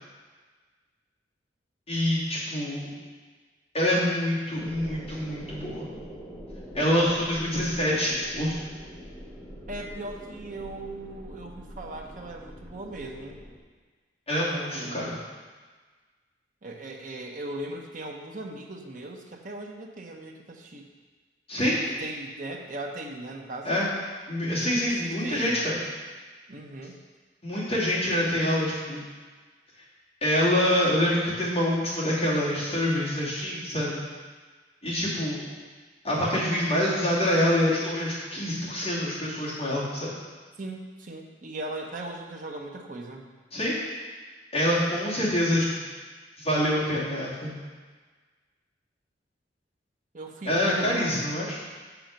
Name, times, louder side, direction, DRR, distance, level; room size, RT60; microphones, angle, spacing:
voice 1, 1.9-2.9 3.7-5.9 6.7-8.6 14.3-15.2 21.5-21.8 23.6-23.9 24.3-25.8 27.4-29.0 30.2-34.0 34.8-35.4 36.0-40.1 43.5-43.8 44.5-45.8 46.4-47.6 50.4-51.6, left 1 dB, 35° left, -8 dB, 2.5 m, -26 dB
sound 1, 4.6-13.6, equal, 10° left, 0.9 m, -43 dB
voice 2, 9.7-13.4 14.5-15.2 16.6-20.9 21.5-23.8 24.6-25.6 26.5-27.0 40.6-43.3 50.1-51.2, right 2 dB, 45° right, 2 dB, 0.8 m, -39 dB
7.0 x 5.9 x 5.2 m, 1.4 s
head